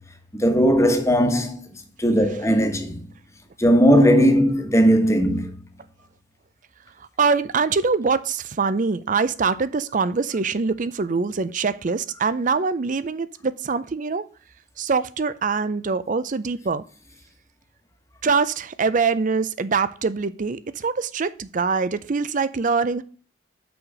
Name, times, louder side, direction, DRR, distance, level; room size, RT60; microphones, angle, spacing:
voice 1, 0.3-1.6 2.0-3.0 3.6-5.5, equal, 15° left, 1.3 m, -18 dB
voice 2, 7.2-14.2 14.8-16.8 18.2-23.0, right 4 dB, 40° right, 0.5 m, -23 dB
6.2 x 4.9 x 6.2 m
head